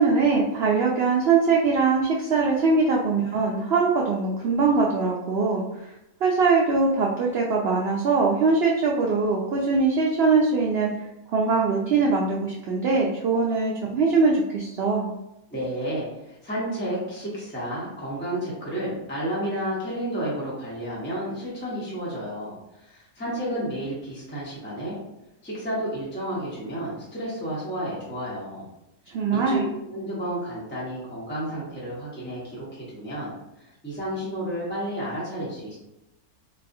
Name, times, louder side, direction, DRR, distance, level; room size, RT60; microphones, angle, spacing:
voice 1, 0.0-5.6 6.2-10.9 11.3-15.1 29.1-29.7, right 4 dB, 70° right, -2 dB, 0.5 m, -22 dB
voice 2, 15.5-25.0 25.4-28.7 29.3-33.3 33.6-35.8, equal, 10° left, -7 dB, 0.9 m, -31 dB
4.1 x 2.3 x 2.6 m, 0.90 s
omnidirectional pair, 1.6 m